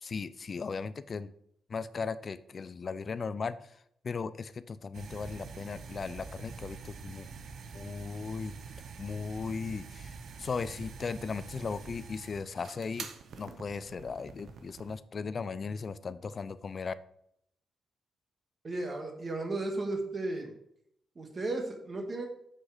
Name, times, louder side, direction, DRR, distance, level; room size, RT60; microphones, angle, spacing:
voice 1, 0.0-1.3 1.7-3.7 4.0-7.3 7.7-8.5 9.0-13.1 13.4-16.9, left 5 dB, 40° left, 14 dB, 0.5 m, -37 dB
sound 1, 4.9-14.9, right 5 dB, 65° right, 0.9 m, -46 dB
voice 2, 18.6-20.5 21.2-22.3, right 2 dB, 30° right, 3 dB, 1.8 m, -34 dB
7.5 x 6.5 x 5.0 m, 0.73 s
cardioid pair, 135°, 0 cm